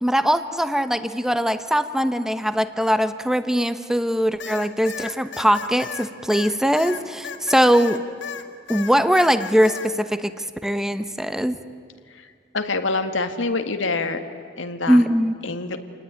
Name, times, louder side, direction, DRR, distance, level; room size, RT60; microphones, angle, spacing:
voice 1, 0.0-8.1 8.7-11.6 14.9-15.3, equal, 5° right, 11 dB, 1.0 m, -21 dB
sound 1, 4.4-8.4 8.7-9.9, left 7 dB, 65° left, 1.8 m, -34 dB
voice 2, 12.5-14.2 14.6-15.0 15.4-15.8, left 3 dB, 85° left, 8 dB, 1.8 m, -25 dB
28.0 x 19.5 x 9.8 m, 2.3 s
head